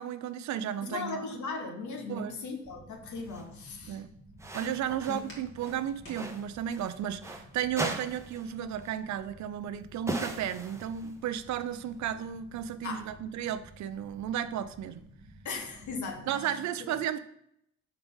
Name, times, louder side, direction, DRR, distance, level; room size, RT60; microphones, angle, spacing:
voice 1, 0.0-1.2 2.1-2.4 3.9-4.1 4.5-15.0 16.3-17.2, right 10 dB, 70° right, 12 dB, 0.5 m, -34 dB
voice 2, 0.8-4.0 4.9-5.2 12.8-13.1 15.4-16.6, left 4 dB, 70° left, 4 dB, 1.2 m, -38 dB
Walk footsteps, 2.4-7.0, equal, 40° left, 2.1 m, -55 dB
sound 1, 2.6-16.3, right 1 dB, 25° right, 1.1 m, -54 dB
sound 2, 3.2-3.5 4.4-5.3 5.6-7.4 7.8-8.5 8.8-9.0 10.1-11.2, right 2 dB, 10° right, 0.8 m, -38 dB
4.9 x 3.5 x 5.5 m, 0.73 s
cardioid pair, 90°, 30 cm